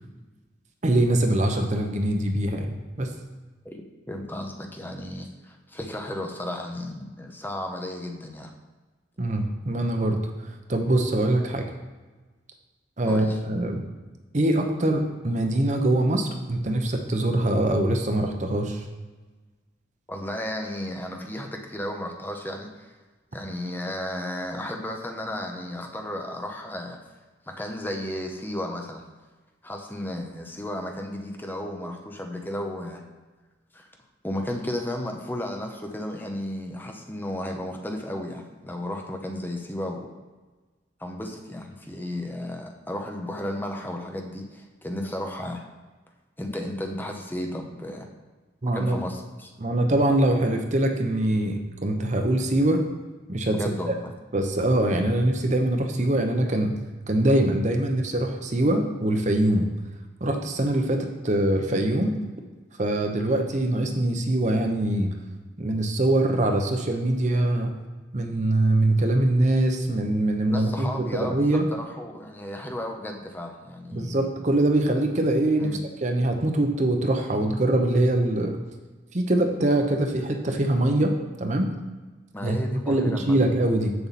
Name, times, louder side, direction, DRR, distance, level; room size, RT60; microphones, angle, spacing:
voice 1, 0.8-3.1 9.2-11.7 13.0-13.8 14.3-18.8 48.6-49.0 49.6-52.8 53.3-53.9 54.3-56.8 57.1-59.7 60.2-62.1 62.8-65.1 65.6-67.7 68.1-71.7 73.9-78.6 79.1-81.1 81.4-81.7 82.4-83.9, right 1 dB, 40° right, 4 dB, 0.8 m, -23 dB
voice 2, 3.6-8.5 13.0-13.4 20.1-22.9 23.3-27.0 27.5-29.0 29.6-33.0 33.7-33.9 34.2-40.1 41.0-45.6 46.4-48.1 48.7-49.5 53.5-54.1 70.5-74.2 75.6-75.8 82.3-83.4, left 1 dB, 10° left, 3 dB, 0.7 m, -34 dB
7.7 x 6.9 x 4.2 m, 1.3 s
head